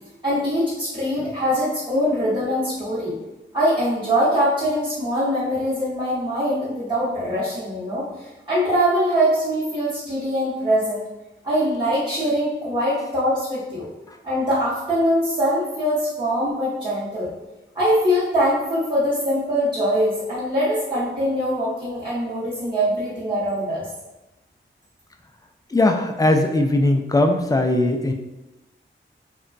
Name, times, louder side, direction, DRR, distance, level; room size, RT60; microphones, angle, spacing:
voice 1, 0.2-3.1 3.5-11.0 11.4-13.9 14.2-17.3 17.7-23.9, equal, 20° right, -11 dB, 0.9 m, -22 dB
voice 2, 25.7-28.1, left 2 dB, 15° left, 5 dB, 0.3 m, -19 dB
2.9 x 2.2 x 2.5 m, 1.0 s
cardioid pair, 50°, 21 cm